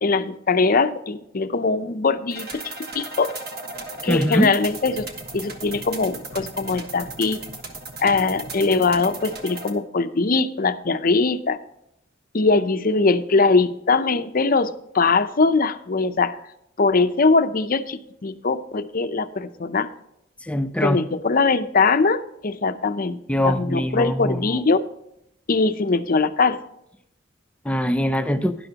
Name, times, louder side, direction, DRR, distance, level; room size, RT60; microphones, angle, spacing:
voice 1, 0.0-2.5 2.9-3.3 4.0-5.1 5.3-7.4 8.0-11.6 12.3-16.4 16.8-19.9 20.8-23.2 23.4-24.8 25.5-26.6, left 4 dB, 45° left, 11 dB, 0.6 m, -21 dB
sound 1, 2.3-9.7, right 3 dB, 50° right, 1.4 m, -36 dB
voice 2, 4.1-4.5 20.5-21.0 23.3-24.6 27.6-28.5, equal, 5° left, 9 dB, 0.6 m, -22 dB
12.0 x 11.0 x 2.9 m, 0.80 s
head